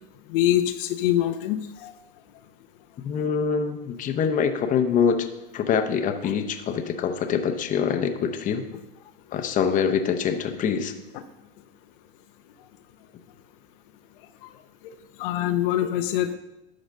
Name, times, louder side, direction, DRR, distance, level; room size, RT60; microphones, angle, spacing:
voice 1, 0.3-1.6 1.8-1.9 11.1-11.2 15.2-16.3, left 12 dB, 65° left, 8 dB, 0.7 m, -24 dB
voice 2, 3.0-5.3 5.5-8.6 9.3-10.9, left 7 dB, 25° left, 6 dB, 0.8 m, -24 dB
11.5 x 4.0 x 6.5 m, 0.98 s
supercardioid pair, 130°, 29 cm